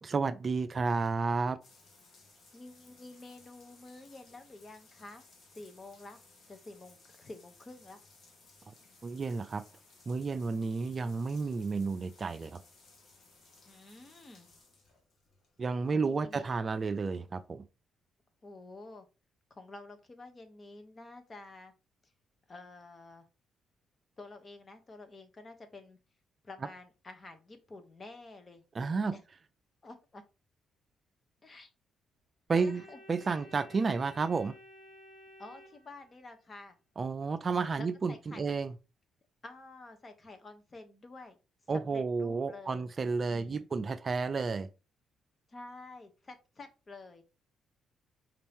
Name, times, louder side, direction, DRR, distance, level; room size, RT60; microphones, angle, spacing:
voice 1, 0.0-1.6 9.0-9.6 10.1-12.6 15.6-17.6 28.7-29.1 32.5-32.8 33.1-34.5 37.0-38.7 41.7-44.7, right 4 dB, 40° right, 0.4 m, -31 dB
sound 1, 1.6-17.4, left 3 dB, 60° left, 1.4 m, -61 dB
voice 2, 2.5-5.3 5.5-6.2 6.5-8.0 13.7-14.5 15.9-16.5 18.4-19.1 19.5-21.7 22.5-23.2 24.2-26.0 26.4-28.6 29.1-29.2 29.8-30.2 31.4-31.7 32.5-33.4 35.4-36.8 37.8-38.6 39.4-41.4 41.7-42.9 43.3-43.7 45.5-47.2, left 2 dB, 35° left, 1.0 m, -49 dB
Organ, 32.5-36.5, equal, 90° left, 1.3 m, -54 dB
5.2 x 2.9 x 3.5 m
cardioid pair, 90°, 0 cm